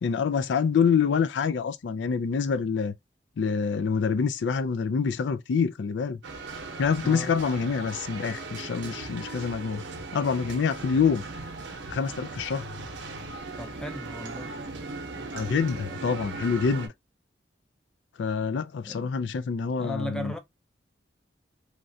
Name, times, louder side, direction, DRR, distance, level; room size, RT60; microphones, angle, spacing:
voice 1, 0.0-2.9 3.4-6.2 6.8-9.8 10.1-11.2 11.9-12.7 15.3-16.9 18.2-20.3, left 6 dB, 85° left, 0.4 m, -26 dB
sound 1, 6.2-16.9, right 3 dB, 90° right, 0.8 m, -38 dB
voice 2, 7.0-7.4 13.6-14.5 18.9-19.1 19.8-20.4, equal, 5° left, 0.4 m, -36 dB
3.2 x 2.4 x 2.6 m
head